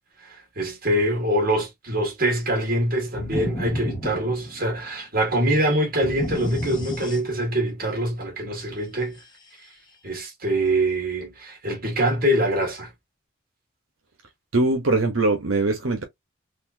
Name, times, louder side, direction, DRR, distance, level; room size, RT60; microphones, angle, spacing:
voice 1, 0.2-9.2 10.0-12.9, right 1 dB, 45° right, 1.9 m, -24 dB
sound 1, 3.2-4.9 6.0-7.7, left 1 dB, 20° left, 0.9 m, -32 dB
voice 2, 14.5-16.0, right 2 dB, 80° right, 1.0 m, -21 dB
4.2 x 2.6 x 2.7 m
head